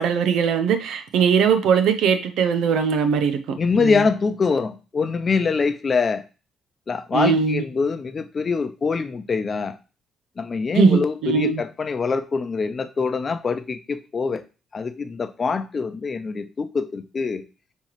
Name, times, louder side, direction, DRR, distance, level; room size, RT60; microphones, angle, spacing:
voice 1, 0.0-3.4 3.8-4.0 7.1-7.6 10.7-11.6, right 6 dB, 75° right, 0.7 m, -20 dB
voice 2, 3.6-6.2 6.9-9.7 10.4-14.4 14.7-17.4, left 4 dB, 40° left, 0.7 m, -24 dB
5.5 x 3.1 x 3.1 m
hypercardioid pair, 55°, 0 cm